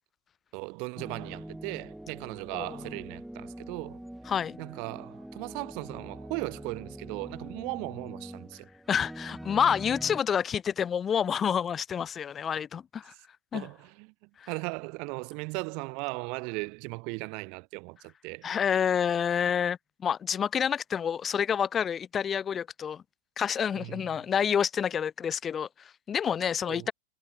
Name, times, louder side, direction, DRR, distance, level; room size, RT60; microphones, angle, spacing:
voice 1, 0.5-4.0 4.6-8.7 13.5-14.1 14.5-18.5 23.7-24.0 26.7-26.9, right 32 dB, 45° right, 1.2 m, -37 dB
sound 1, 1.0-10.2, right 1 dB, ahead, 4.3 m, -44 dB
voice 2, 4.3-4.6 8.9-13.1 13.5-13.7 14.4-14.5 18.4-23.0 23.4-26.9, left 8 dB, 20° left, 0.7 m, -28 dB
figure-of-eight pair, 90°, 0 cm